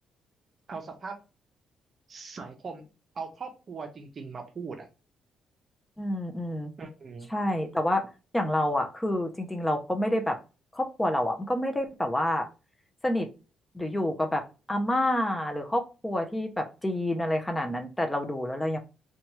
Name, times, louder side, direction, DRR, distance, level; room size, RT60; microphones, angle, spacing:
voice 1, 0.7-1.2 2.1-2.8 3.1-4.9 6.8-7.3, right 4 dB, 45° right, 6 dB, 0.6 m, -39 dB
voice 2, 6.0-6.7 7.3-8.0 8.3-10.4 10.7-12.5 13.0-13.3 13.7-14.4 14.7-18.8, left 1 dB, 10° left, 4 dB, 0.5 m, -28 dB
2.9 x 2.3 x 2.9 m, 0.32 s
cardioid pair, 90°, 0 cm